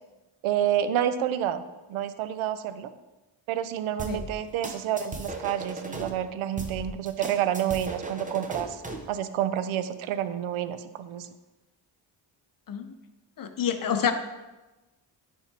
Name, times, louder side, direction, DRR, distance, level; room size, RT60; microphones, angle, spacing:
voice 1, 0.4-1.6 1.9-2.9 3.5-8.8 9.1-11.3, right 10 dB, 75° right, 12 dB, 0.6 m, -29 dB
sound 1, 4.0-6.1 6.6-9.1, right 2 dB, 15° right, 0.8 m, -37 dB
voice 2, 13.4-14.1, left 8 dB, 45° left, 8 dB, 0.7 m, -27 dB
9.7 x 3.6 x 2.8 m, 1.1 s
cardioid pair, 65°, 49 cm